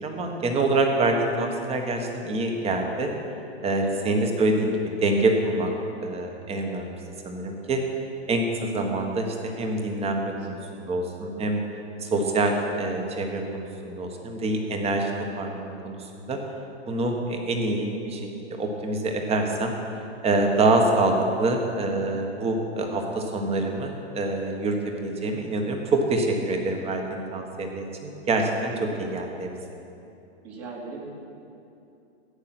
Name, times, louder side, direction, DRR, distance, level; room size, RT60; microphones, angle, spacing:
voice 1, 0.0-3.1 3.6-5.7 6.0-6.9 7.2-7.8 8.3-11.6 12.0-16.4 16.9-18.2 18.5-19.7 20.2-29.5, right 2 dB, 20° right, 3 dB, 1.4 m, -26 dB
voice 2, 10.3-10.8 28.8-29.0 30.4-31.3, right 3 dB, 40° right, -2 dB, 2.6 m, -41 dB
13.5 x 8.9 x 6.1 m, 2.7 s
hypercardioid pair, 125°, 34 cm